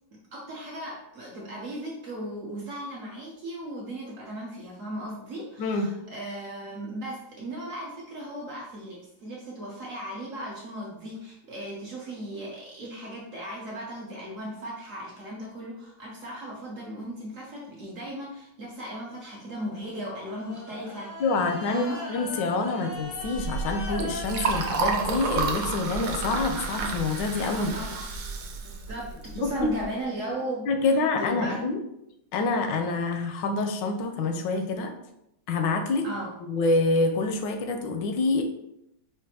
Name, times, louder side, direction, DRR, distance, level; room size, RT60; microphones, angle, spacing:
voice 1, 0.1-22.0 27.5-28.1 28.6-31.6 36.0-36.4, right 1 dB, 65° right, -2 dB, 0.8 m, -37 dB
voice 2, 5.6-5.9 21.2-21.8 22.1-27.7 29.4-29.5 30.7-31.8 32.3-34.9 35.5-36.0 36.4-38.5, left 3 dB, 80° left, 6 dB, 1.2 m, -26 dB
sound 1, 19.5-27.3 27.6-30.3, left 2 dB, 50° left, 0.5 m, -41 dB
Liquid, 23.2-29.8, right 4 dB, 80° right, 1.3 m, -31 dB
5.0 x 2.4 x 2.7 m, 0.81 s
omnidirectional pair, 2.0 m